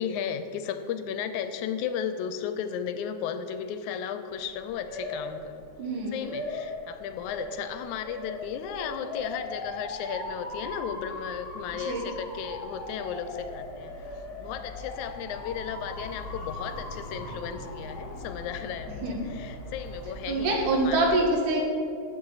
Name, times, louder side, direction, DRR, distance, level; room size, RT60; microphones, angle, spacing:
voice 1, 0.0-5.6 6.1-14.1 14.4-20.6 20.8-21.0, left 8 dB, 80° left, 9 dB, 1.9 m, -35 dB
Motor vehicle (road) / Siren, 4.3-21.1, left 2 dB, 60° left, 0.9 m, -39 dB
voice 2, 5.8-6.3 11.7-12.1 19.0-19.3 20.3-21.7, right 2 dB, 80° right, 0 dB, 3.1 m, -26 dB
13.5 x 7.8 x 4.0 m, 2.4 s
omnidirectional pair, 3.6 m